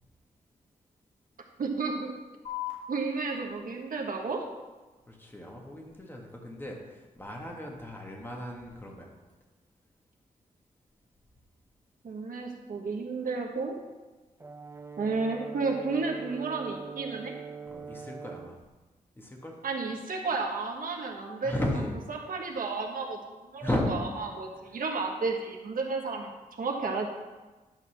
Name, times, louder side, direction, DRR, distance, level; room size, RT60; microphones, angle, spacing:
voice 1, 1.6-2.2 2.9-4.5 12.0-13.7 15.0-17.3 19.6-21.5 22.1-24.0 24.4-26.3 26.6-27.1, right 4 dB, 70° right, 1 dB, 1.4 m, -32 dB
sound 1, 2.4-9.4, left 11 dB, 55° left, 3.1 m, -47 dB
voice 2, 5.1-9.1 17.7-18.6 19.1-19.6 21.4-22.0 23.6-23.9 24.6-24.8, left 1 dB, 15° left, 0 dB, 1.7 m, -35 dB
Brass instrument, 14.4-18.6, right 5 dB, 20° right, 0.6 m, -42 dB
11.0 x 4.1 x 7.0 m, 1.2 s
wide cardioid pair, 95°, 15 cm